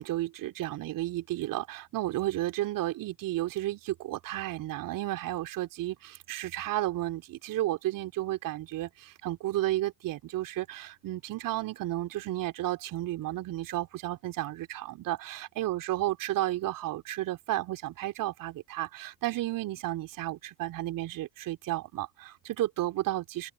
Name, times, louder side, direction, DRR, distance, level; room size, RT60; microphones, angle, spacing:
voice 1, 0.0-23.5, right 15 dB, 50° right, 3.6 m, -32 dB
figure-of-eight pair, 65°, 43 cm